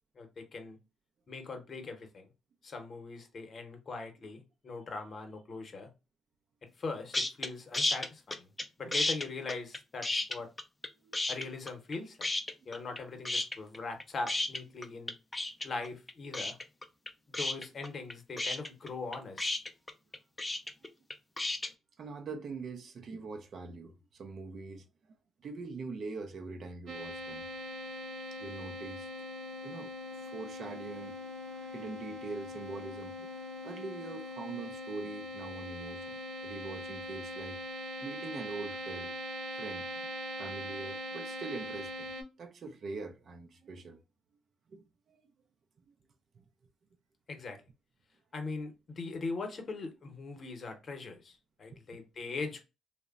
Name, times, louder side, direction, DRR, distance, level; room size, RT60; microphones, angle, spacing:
voice 1, 0.2-0.8 1.3-2.3 2.6-5.9 6.8-8.5 8.8-10.5 11.3-12.3 12.7-15.1 15.6-16.6 17.3-19.6 47.3-47.6 48.3-52.6, left 3 dB, 45° left, 0.8 m, -41 dB
sound 1, 7.1-7.5 7.7-8.6 8.9-10.9 11.1-11.9 12.2-13.0 13.2-21.7, left 2 dB, 20° left, 0.3 m, -33 dB
voice 2, 22.0-24.9 25.4-27.5 28.4-29.1 29.6-33.4 33.6-37.6 38.0-39.1 39.6-40.1 40.4-42.1 42.4-44.0 44.7-45.3 46.4-46.5 51.7-52.0, right 4 dB, 55° right, 0.4 m, -43 dB
sound 2, 26.9-42.2, left 1 dB, 75° right, 0.8 m, -41 dB
2.9 x 2.1 x 2.3 m
cardioid pair, 90°, 0 cm